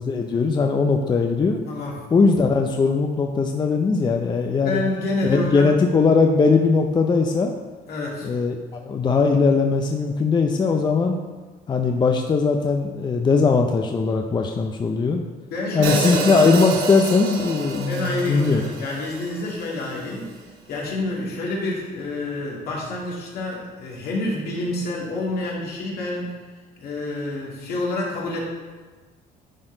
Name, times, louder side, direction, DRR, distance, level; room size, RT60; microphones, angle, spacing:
voice 1, 0.0-1.6 2.1-4.8 5.2-7.5 8.2-11.2 11.7-15.2 15.7-18.6, left 4 dB, 25° left, 4 dB, 0.5 m, -20 dB
voice 2, 1.6-2.0 4.6-5.7 7.9-8.3 15.5-16.3 17.9-20.3 20.7-26.4 26.8-28.4, left 2 dB, 65° left, -3 dB, 2.2 m, -28 dB
Hi-hat, 15.8-20.0, right 4 dB, 75° right, 1.0 m, -29 dB
10.0 x 4.3 x 3.9 m, 1.3 s
cardioid pair, 110°, 17 cm